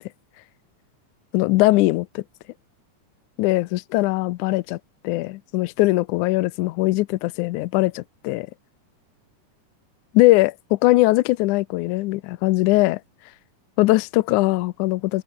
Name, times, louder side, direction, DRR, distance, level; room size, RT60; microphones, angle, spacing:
voice 1, 1.3-2.2 3.4-4.8 5.0-8.5 10.1-13.0 13.8-15.2, left 20 dB, 80° left, 2.1 m, -20 dB
omnidirectional pair, 3.5 m